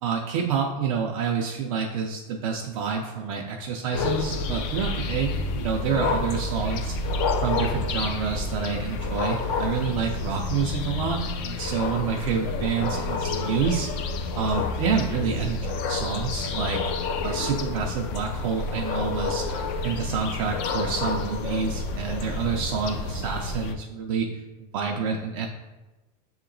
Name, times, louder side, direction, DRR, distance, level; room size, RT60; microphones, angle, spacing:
voice 1, 0.0-6.9 7.4-13.9 14.3-16.9 17.2-24.3 24.6-25.5, right 6 dB, 55° right, 1 dB, 0.4 m, -28 dB
sound 1, 3.9-23.7, left 3 dB, 35° left, 0.4 m, -29 dB
6.6 x 2.8 x 2.5 m, 1.1 s
supercardioid pair, 160°, 21 cm